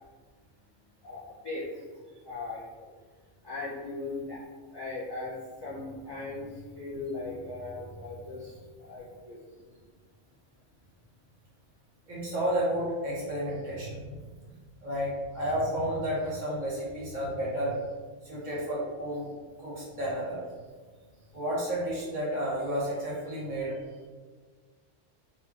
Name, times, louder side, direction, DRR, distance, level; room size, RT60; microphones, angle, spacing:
voice 1, 1.0-2.9 3.4-4.4 4.7-9.4 21.0-21.1, left 2 dB, 30° left, -9 dB, 0.4 m, -39 dB
voice 2, 12.1-14.2 14.8-17.8 18.2-19.3 19.6-20.4 21.3-23.8, equal, 40° right, -7 dB, 0.8 m, -31 dB
2.4 x 2.1 x 3.7 m, 1.5 s
omnidirectional pair, 1.3 m